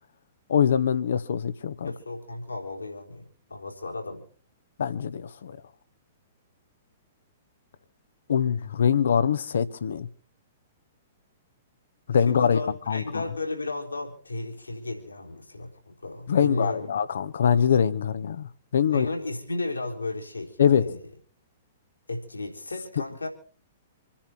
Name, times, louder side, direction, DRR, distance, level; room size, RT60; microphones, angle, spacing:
voice 1, 0.5-1.9 4.8-5.5 8.3-10.1 12.1-12.6 12.9-13.2 16.3-19.1 20.6-20.9, left 7 dB, 60° left, 1.3 m, -23 dB
voice 2, 1.8-4.2 12.3-16.9 18.9-21.1 22.1-23.3, left 2 dB, 80° left, 4.1 m, -34 dB
27.0 x 10.5 x 4.5 m
figure-of-eight pair, 110°, 0 cm